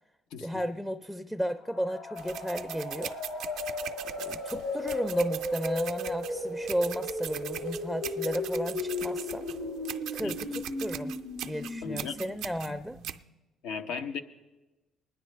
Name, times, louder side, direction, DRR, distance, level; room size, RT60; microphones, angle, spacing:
voice 1, 0.4-3.2 4.2-9.5 10.1-11.2 11.4-13.0, equal, 5° left, 8 dB, 0.4 m, -34 dB
sound 1, 1.5-13.2, left 2 dB, 70° left, 5.2 m, -36 dB
sound 2, 2.2-13.2, right 11 dB, 80° right, 0.4 m, -41 dB
voice 2, 11.8-12.2 13.6-14.2, left 6 dB, 85° left, 8 dB, 0.8 m, -35 dB
20.5 x 10.0 x 3.3 m, 1.1 s
cardioid pair, 90°, 0 cm